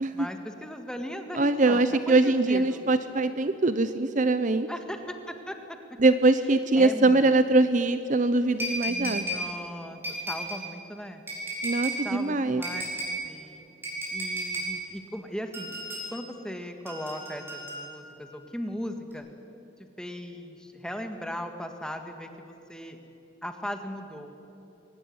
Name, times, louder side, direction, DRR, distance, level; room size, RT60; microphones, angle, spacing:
voice 1, 0.1-2.8 4.7-6.0 6.8-7.2 8.9-10.0 10.3-11.2 12.0-13.7 14.1-15.8 16.1-19.3 20.0-23.0 23.4-24.3, equal, 5° left, 6 dB, 1.7 m, -38 dB
voice 2, 1.4-4.7 6.0-9.5 11.6-12.6, right 2 dB, 40° right, 11 dB, 0.7 m, -23 dB
sound 1, 8.6-9.5 10.0-10.6 11.3-12.0 12.6-13.2 13.8-14.7 15.5-16.1 16.9-18.1 19.1-19.2, equal, 10° right, 6.3 m, -33 dB
22.5 x 18.5 x 9.5 m, 2.9 s
head